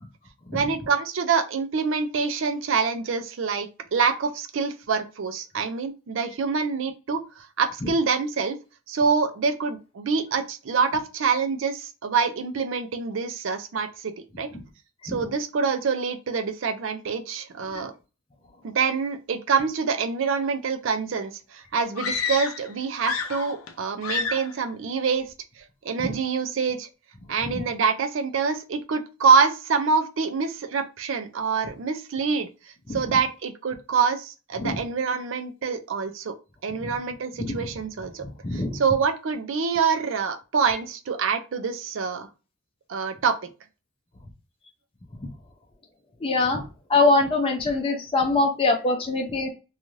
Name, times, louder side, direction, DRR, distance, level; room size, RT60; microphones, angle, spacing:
voice 1, 0.5-8.6 8.9-14.1 14.4-14.5 15.0-17.9 18.6-25.3 25.8-26.9 27.3-32.5 32.9-36.3 36.6-38.2 38.5-42.3 42.9-43.3, right 5 dB, 70° right, 8 dB, 0.5 m, -26 dB
sound 1, 22.0-22.7 23.0-23.7 24.0-24.6, left 5 dB, 85° left, 0.4 m, -29 dB
voice 2, 38.4-38.8 46.2-46.6 46.9-49.5, left 3 dB, 25° left, 1 dB, 0.5 m, -23 dB
2.6 x 2.4 x 3.0 m, 0.30 s
head